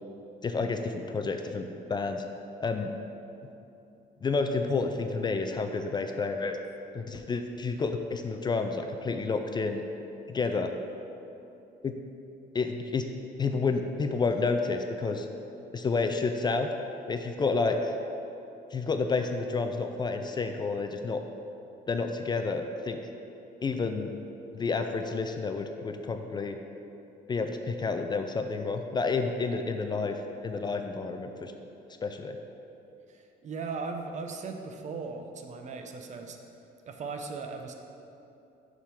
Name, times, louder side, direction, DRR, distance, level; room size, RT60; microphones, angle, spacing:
voice 1, 0.4-2.2 2.6-2.9 4.2-6.6 6.9-9.8 10.3-10.7 11.8-11.9 12.5-13.1 13.4-15.3 15.7-16.7 17.1-17.9 18.7-21.2 21.9-23.0 23.6-24.1 24.5-26.6 27.3-30.2 30.4-31.5 32.0-32.4, left 4 dB, 25° left, 6 dB, 0.4 m, -30 dB
voice 2, 33.1-36.4 36.9-37.7, right 4 dB, 45° right, 5 dB, 0.7 m, -38 dB
7.2 x 3.7 x 6.1 m, 2.8 s
cardioid pair, 110°, 17 cm